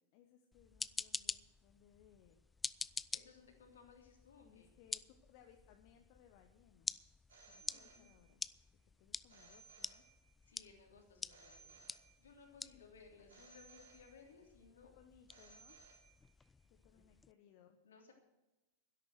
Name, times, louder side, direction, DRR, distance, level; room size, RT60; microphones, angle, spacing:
voice 1, 0.1-2.5 4.4-7.0 7.5-8.4 9.0-10.0 12.7-12.8 13.2-13.4 14.8-15.8 16.7-17.8, left 9 dB, 45° left, 5 dB, 1.1 m, -66 dB
sound 1, 0.5-17.3, left 4 dB, 15° left, 0.3 m, -49 dB
voice 2, 2.9-4.7 7.5-8.1 10.4-11.8 12.2-14.9 16.9-17.0 17.8-18.1, left 5 dB, 65° left, 2 dB, 3.2 m, -62 dB
Telephone, 7.3-8.5 9.3-10.5 11.3-12.5 13.3-14.5 15.3-16.5, right 4 dB, 65° right, 2.9 m, -62 dB
12.5 x 11.0 x 6.4 m, 1.0 s
figure-of-eight pair, 90°, 0 cm